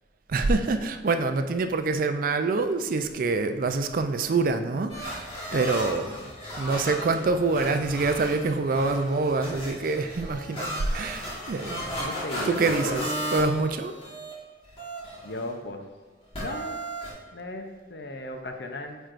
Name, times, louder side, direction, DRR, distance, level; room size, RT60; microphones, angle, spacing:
voice 1, 0.3-6.3 6.6-11.8 12.4-13.9, right 3 dB, 50° right, 8 dB, 0.4 m, -26 dB
sound 1, 4.9-14.3 14.6-15.5 16.3-17.1, equal, 30° left, 1.7 m, -35 dB
sound 2, 5.0-11.6, equal, 10° left, 0.7 m, -51 dB
voice 2, 12.0-13.1 15.2-15.8 16.4-16.8 17.3-19.0, left 2 dB, 65° left, 5 dB, 0.6 m, -36 dB
9.2 x 4.5 x 2.5 m, 1.3 s
head